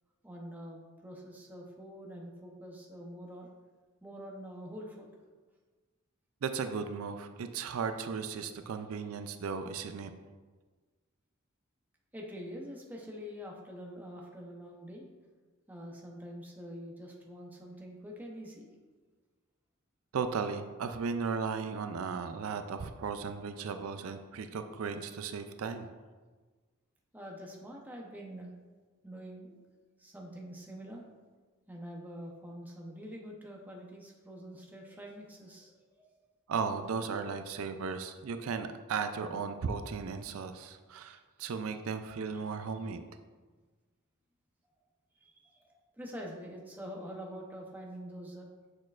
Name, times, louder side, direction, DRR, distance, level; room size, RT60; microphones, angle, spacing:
voice 1, 0.2-3.5 4.0-5.1 12.1-15.1 15.7-18.7 27.1-28.5 29.0-29.6 30.0-31.0 31.7-35.8 42.3-42.4 45.2-48.5, equal, 10° right, -1 dB, 0.7 m, -45 dB
voice 2, 6.4-10.1 20.1-25.9 36.5-43.0, right 5 dB, 80° right, 8 dB, 0.4 m, -36 dB
6.4 x 6.3 x 2.4 m, 1.4 s
head